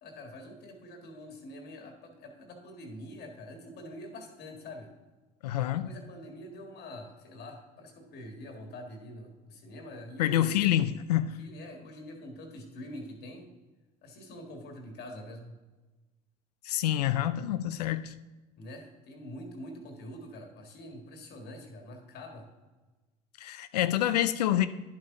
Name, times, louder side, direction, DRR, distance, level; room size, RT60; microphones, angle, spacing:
voice 1, 0.0-4.9 5.8-10.9 11.4-13.5 14.0-15.6 18.6-22.5, left 1 dB, 55° left, 4 dB, 1.7 m, -45 dB
voice 2, 5.4-5.9 10.2-11.4 16.6-18.1 23.4-24.7, left 12 dB, 85° left, 12 dB, 0.4 m, -27 dB
10.0 x 7.2 x 3.7 m, 1.2 s
hypercardioid pair, 70°, 20 cm